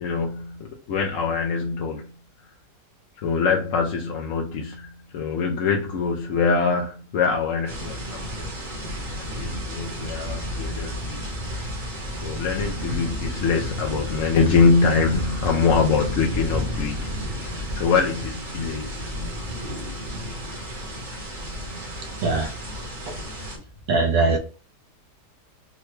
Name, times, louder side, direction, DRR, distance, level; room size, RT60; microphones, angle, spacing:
voice 1, 0.0-2.1 3.2-8.5 9.2-11.2 12.2-18.9, left 5 dB, 70° left, 0.7 m, -24 dB
sound 1, 7.7-23.6, equal, 35° right, 1.0 m, -32 dB
voice 2, 23.9-24.4, right 3 dB, 70° right, 0.9 m, -21 dB
3.8 x 2.1 x 3.1 m
omnidirectional pair, 1.8 m